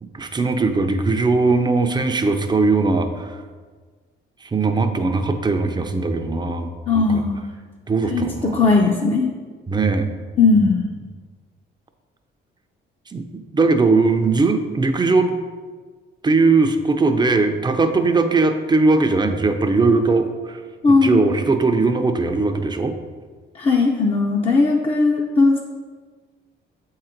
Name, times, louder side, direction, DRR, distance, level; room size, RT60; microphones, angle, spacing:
voice 1, 0.0-3.4 4.4-6.7 6.9-7.2 7.9-8.6 9.7-10.1 10.5-10.6 13.1-13.2 13.5-15.4 16.2-20.6 21.0-23.0, right 3 dB, 20° right, 6 dB, 0.6 m, -19 dB
voice 2, 6.9-7.4 8.1-9.3 10.4-10.8 20.8-21.2 23.5-25.6, left 3 dB, 30° left, -1 dB, 0.6 m, -17 dB
7.3 x 3.8 x 4.5 m, 1.5 s
cardioid pair, 90°, 20 cm